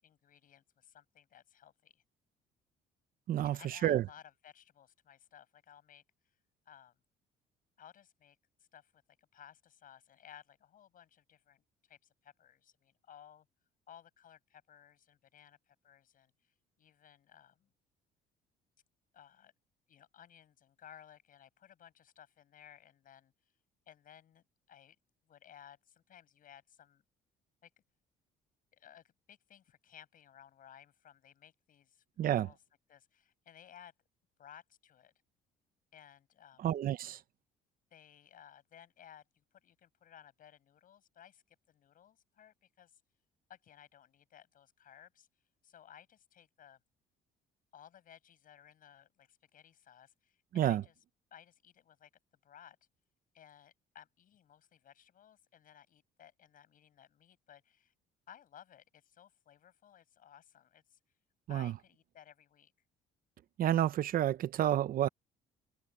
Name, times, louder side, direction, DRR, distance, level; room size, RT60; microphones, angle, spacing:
voice 1, 0.0-2.0 3.4-6.4 6.7-6.9 7.8-8.4 8.7-13.5 13.9-16.5 16.8-17.7 19.1-19.5 19.9-23.3 23.9-25.0 25.3-27.0 27.6-27.7 28.7-32.6 32.9-33.9 34.4-35.1 35.9-36.7 37.9-43.0 43.5-45.3 45.6-46.8 47.7-50.9 51.3-52.1 52.4-52.8 53.3-57.9 58.3-61.0 61.5-62.7, left 10 dB, 55° left, 8.0 m, -58 dB
voice 2, 3.3-4.1 32.2-32.5 36.6-37.2 50.5-50.8 61.5-61.7 63.6-65.1, right 12 dB, 60° right, 1.0 m, -30 dB
open air
cardioid pair, 110°, 17 cm